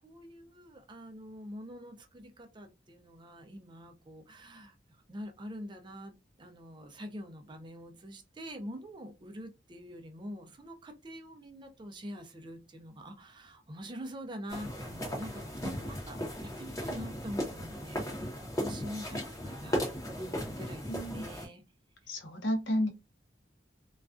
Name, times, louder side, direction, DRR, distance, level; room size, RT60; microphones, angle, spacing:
voice 1, 0.0-21.6, equal, 25° right, 0.4 m, -45 dB
sound 1, 14.5-21.5, equal, 20° left, 0.7 m, -36 dB
voice 2, 20.9-21.2 22.1-22.9, equal, 70° left, 0.7 m, -31 dB
2.3 x 2.2 x 2.4 m
head